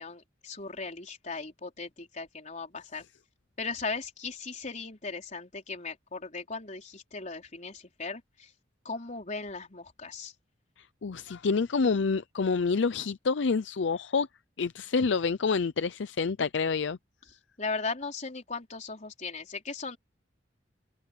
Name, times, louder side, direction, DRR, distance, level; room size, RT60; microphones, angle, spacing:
voice 1, 0.0-3.0 3.6-8.5 8.8-10.3 17.6-20.0, left 4 dB, 40° left, 4.2 m, -37 dB
voice 2, 11.0-14.3 14.6-17.0, left 4 dB, 80° left, 0.5 m, -27 dB
head